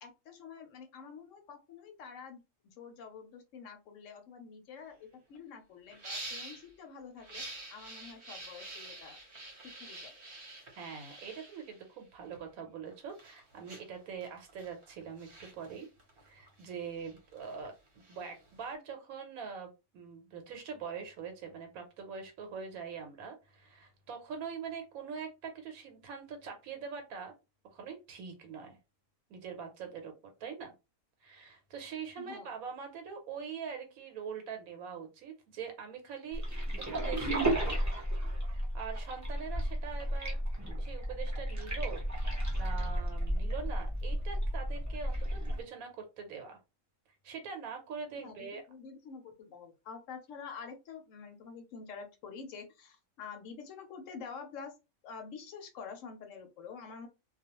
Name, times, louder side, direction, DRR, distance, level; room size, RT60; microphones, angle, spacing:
voice 1, 0.0-7.4 7.7-9.2 9.8-10.1 32.2-32.5 48.2-54.7 55.0-57.1, left 5 dB, 70° left, 6 dB, 0.9 m, -47 dB
sound 1, 4.8-4.9 5.1-5.4 5.9-6.7 7.2-12.4 12.9-18.7, right 2 dB, 45° right, 0.9 m, -47 dB
voice 2, 10.8-15.9 16.2-17.7 18.1-27.3 27.7-28.8 29.3-30.1 30.4-30.7 31.2-36.4 36.8-37.8 38.5-40.4 40.8-42.0 42.5-46.6 47.2-48.6, right 6 dB, 85° right, 4 dB, 1.1 m, -43 dB
sound 2, 36.3-45.6, right 1 dB, 15° right, 0.6 m, -33 dB
2.4 x 2.1 x 2.8 m, 0.27 s
omnidirectional pair, 1.5 m